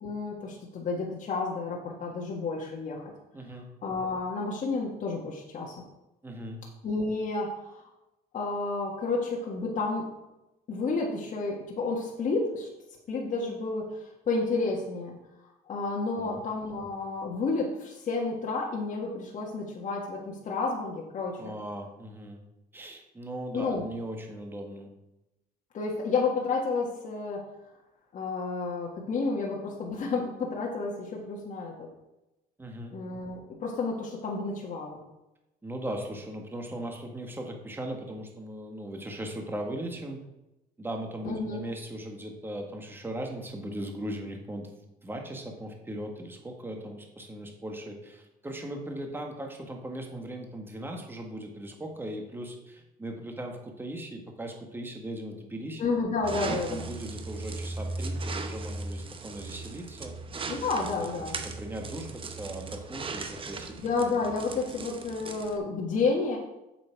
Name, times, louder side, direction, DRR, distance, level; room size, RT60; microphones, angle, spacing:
voice 1, 0.0-3.1 3.8-5.7 6.8-7.8 8.3-10.1 10.7-12.7 13.1-15.1 15.7-21.4 23.5-23.8 25.7-27.4 28.1-31.9 32.9-35.0 41.2-41.6 55.8-56.9 60.5-61.4 63.8-66.4, left 3 dB, 50° left, -2 dB, 1.6 m, -31 dB
voice 2, 3.3-3.7 6.2-6.6 16.1-16.4 16.8-16.9 21.4-22.4 22.7-24.9 32.6-32.9 35.6-40.2 40.8-55.8 56.3-60.1 60.8-61.1 61.4-63.7, right 1 dB, 10° right, 2 dB, 1.6 m, -38 dB
sound 1, 56.2-65.6, right 3 dB, 30° right, 1.0 m, -38 dB
7.7 x 7.1 x 4.6 m, 0.94 s
cardioid pair, 110°, 17 cm